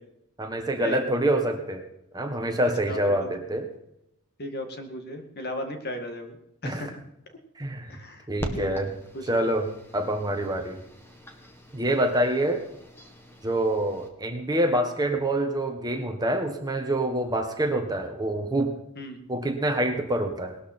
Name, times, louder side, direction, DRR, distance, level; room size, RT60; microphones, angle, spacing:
voice 1, 0.4-1.8 2.1-3.7 6.6-6.9 7.6-7.9 8.3-8.9 9.3-9.7 9.9-10.8 11.7-12.6 13.4-18.7 19.3-20.6, right 1 dB, 20° right, 5 dB, 1.5 m, -26 dB
voice 2, 2.9-3.3 4.4-6.4 6.6-7.0 7.9-8.3 8.5-8.9 9.1-9.4 11.8-12.1 19.0-19.2, equal, 50° left, 5 dB, 2.1 m, -36 dB
sound 1, 8.4-14.1, equal, 10° left, 1.8 m, -41 dB
19.0 x 12.5 x 4.4 m, 0.80 s
head